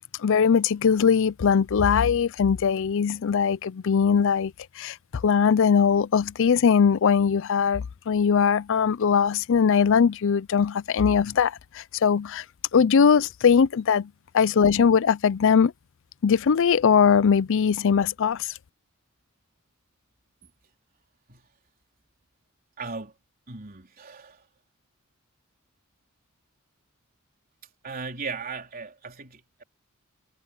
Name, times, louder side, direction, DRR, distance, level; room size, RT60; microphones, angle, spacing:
voice 1, 0.2-5.0 5.2-12.4 12.7-15.7 16.2-18.5, left 6 dB, 65° left, 0.5 m, -21 dB
voice 2, 22.8-23.2 23.5-24.5 27.8-29.6, right 4 dB, 45° right, 3.9 m, -37 dB
head